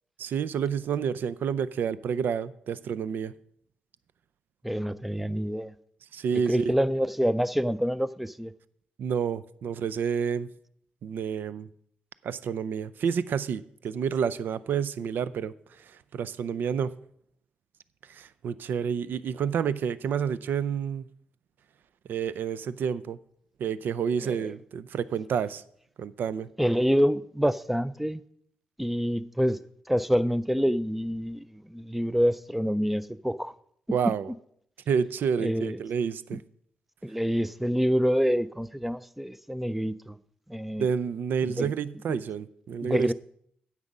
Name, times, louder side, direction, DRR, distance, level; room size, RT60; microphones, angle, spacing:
voice 1, 0.2-3.3 6.1-6.7 9.0-10.5 11.0-11.7 12.2-16.9 18.1-21.0 22.1-23.2 23.6-25.6 26.0-26.5 33.9-34.3 34.9-36.4 40.8-43.1, right 7 dB, 70° right, 0.5 m, -29 dB
voice 2, 4.6-5.7 6.3-8.5 24.2-24.5 26.6-28.2 28.8-29.6 29.9-33.5 35.4-35.8 36.3-36.4 37.0-40.2 40.5-40.9 41.4-41.7 42.1-42.2 42.8-43.1, equal, 5° right, 0.4 m, -27 dB
9.7 x 7.4 x 5.3 m
cardioid pair, 95°, 3 cm